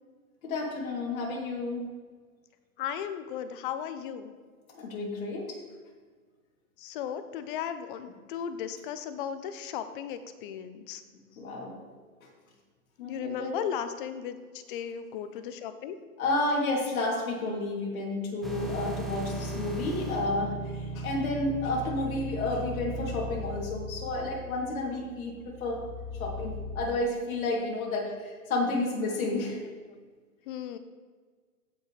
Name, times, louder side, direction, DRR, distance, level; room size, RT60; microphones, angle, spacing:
voice 1, 0.4-1.8 4.7-5.6 11.4-11.7 13.0-13.5 16.2-25.8 26.2-29.6, left 2 dB, 65° left, -2 dB, 3.0 m, -31 dB
voice 2, 2.8-4.3 6.8-11.0 13.1-16.0 30.5-30.8, left 8 dB, 35° left, 10 dB, 0.7 m, -36 dB
sound 1, 18.4-26.8, equal, ahead, 1.0 m, -37 dB
15.5 x 5.8 x 3.3 m, 1.5 s
hypercardioid pair, 140°, 44 cm